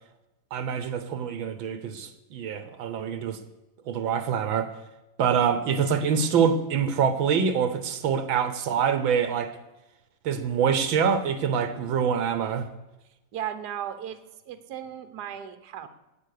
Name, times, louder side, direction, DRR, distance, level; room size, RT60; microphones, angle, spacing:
voice 1, 0.5-3.4 3.9-4.7 5.2-9.5 10.2-12.7, right 7 dB, 75° right, 11 dB, 1.7 m, -25 dB
voice 2, 13.3-14.2 14.5-15.9, right 10 dB, 60° right, 10 dB, 1.5 m, -35 dB
17.5 x 7.9 x 6.7 m, 1.0 s
omnidirectional pair, 2.2 m